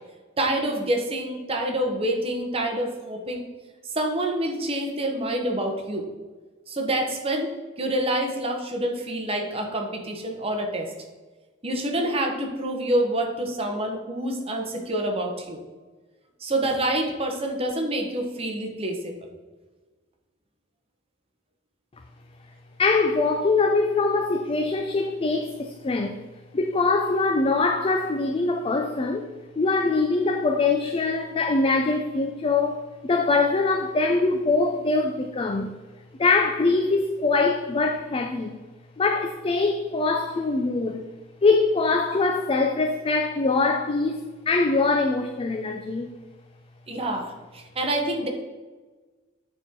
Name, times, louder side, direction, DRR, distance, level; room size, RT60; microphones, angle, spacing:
voice 1, 0.4-3.4 3.9-6.1 6.7-10.9 11.6-15.6 16.4-19.1 46.9-48.3, right 1 dB, 30° right, 1.1 m, -27 dB
voice 2, 22.8-26.2 26.5-29.3 29.6-35.7 36.2-38.5 39.0-41.0 41.4-46.1, left 3 dB, 30° left, 0.4 m, -23 dB
9.1 x 4.4 x 3.7 m
head